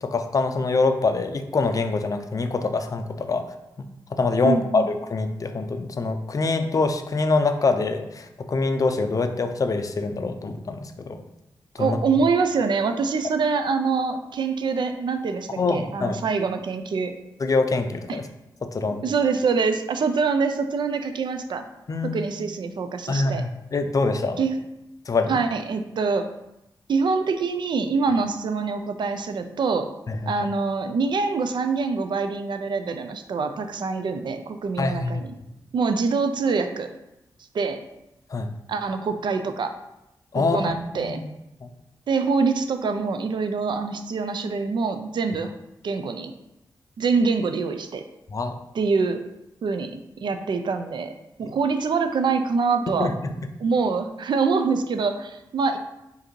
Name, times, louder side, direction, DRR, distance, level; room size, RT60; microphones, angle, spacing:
voice 1, 0.0-3.4 3.8-11.2 11.7-12.0 15.6-16.2 17.4-18.2 18.6-19.0 21.9-22.2 23.1-24.4 25.1-25.4 30.1-30.3 34.8-35.2 38.3-38.5 40.3-41.3 41.6-41.7 48.3-48.6 53.0-53.1, left 3 dB, 45° left, 7 dB, 0.4 m, -25 dB
voice 2, 4.4-4.8 11.8-17.1 18.1-18.2 19.0-21.6 22.0-23.4 24.4-24.5 25.3-26.3 26.9-29.9 30.3-35.3 35.7-36.9 37.5-37.8 38.7-39.7 40.5-41.2 42.1-45.5 45.8-46.3 47.0-48.0 48.7-49.2 49.6-51.1 51.4-53.1 53.6-55.8, right 4 dB, 70° right, 8 dB, 0.4 m, -25 dB
4.8 x 2.6 x 3.1 m, 0.90 s
cardioid pair, 75°, 8 cm